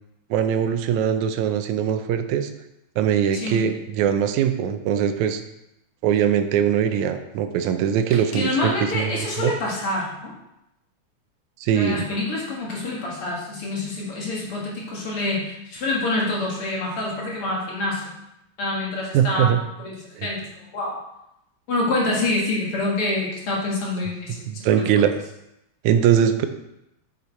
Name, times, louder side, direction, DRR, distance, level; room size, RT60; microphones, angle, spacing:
voice 1, 0.3-2.5 3.0-5.4 6.0-9.5 11.6-12.0 19.1-19.6 20.2-20.3 24.5-25.1 25.8-26.5, right 9 dB, 85° right, 8 dB, 2.0 m, -21 dB
voice 2, 3.3-3.7 8.1-10.3 11.7-18.0 18.6-21.0 21.7-24.8, left 2 dB, 55° left, -3 dB, 2.3 m, -27 dB
7.0 x 6.5 x 4.3 m, 0.86 s
omnidirectional pair, 3.3 m